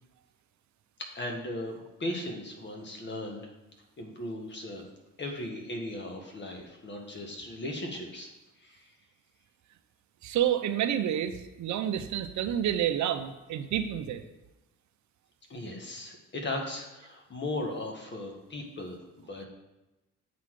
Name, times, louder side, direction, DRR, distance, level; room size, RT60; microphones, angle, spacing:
voice 1, 1.1-3.5 4.0-4.8 5.2-8.3 8.6-8.9 15.5-19.5, left 1 dB, 35° left, 2 dB, 1.6 m, -37 dB
voice 2, 10.2-14.2, right 10 dB, 70° right, 9 dB, 0.6 m, -29 dB
8.4 x 4.0 x 4.7 m, 1.0 s
cardioid pair, 90°, 30 cm